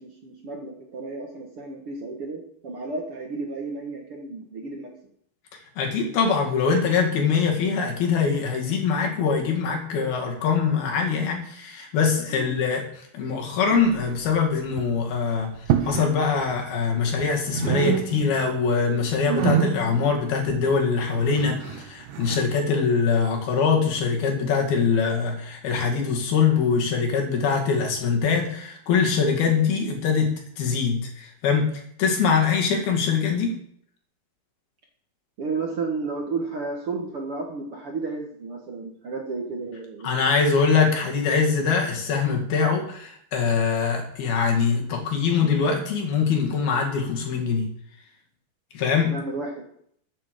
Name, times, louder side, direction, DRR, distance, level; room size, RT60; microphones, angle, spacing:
voice 1, 0.0-4.9 12.3-12.6 35.4-40.1 49.1-49.6, right 3 dB, 50° right, 1 dB, 1.9 m, -32 dB
voice 2, 5.8-15.5 15.9-30.3 30.6-33.5 40.0-47.7 48.7-49.1, left 5 dB, 80° left, 1 dB, 4.2 m, -23 dB
sound 1, 13.7-14.4 14.7-15.0 15.6-16.1 16.4-17.3 17.5-18.5 18.8-22.5, right 9 dB, 70° right, 2.4 m, -28 dB
14.0 x 8.8 x 5.2 m, 0.67 s
omnidirectional pair, 4.3 m